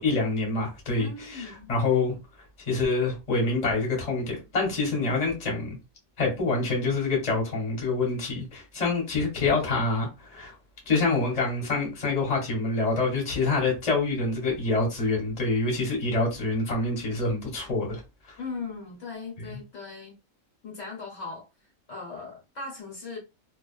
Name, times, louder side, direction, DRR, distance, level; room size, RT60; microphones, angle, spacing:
voice 1, 0.0-2.1 2.7-5.8 6.2-10.5 10.9-18.0 18.3-18.4 19.5-19.6, left 3 dB, 30° left, 1.1 m, -26 dB
voice 2, 0.9-1.7 18.4-20.1 20.6-21.5 21.9-23.2, left 4 dB, 65° left, 1.2 m, -38 dB
2.3 x 2.3 x 2.3 m
omnidirectional pair, 1.4 m